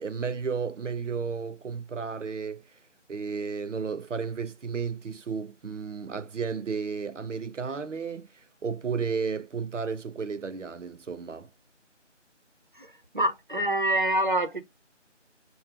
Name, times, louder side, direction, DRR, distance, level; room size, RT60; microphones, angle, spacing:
voice 1, 0.0-2.7 3.1-11.5, right 5 dB, 80° right, 0.6 m, -33 dB
voice 2, 13.1-14.6, right 1 dB, 40° right, 0.7 m, -25 dB
6.0 x 2.2 x 3.3 m
figure-of-eight pair, 165°, 37 cm